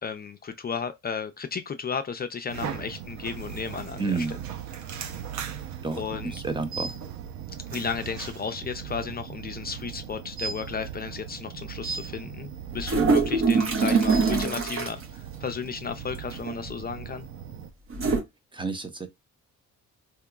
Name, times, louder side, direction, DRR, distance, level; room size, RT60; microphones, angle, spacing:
voice 1, 0.0-4.4 6.0-6.4 7.7-17.3, left 6 dB, 30° left, 0.4 m, -34 dB
sound 1, 2.5-17.7, right 8 dB, 70° right, 0.7 m, -38 dB
voice 2, 4.0-4.4 5.8-6.9 18.5-19.1, right 4 dB, 15° right, 0.6 m, -30 dB
sound 2, 12.7-15.0 16.3-16.7 17.9-18.2, right 4 dB, 45° right, 0.9 m, -23 dB
3.5 x 2.9 x 2.3 m
cardioid pair, 90°, 30 cm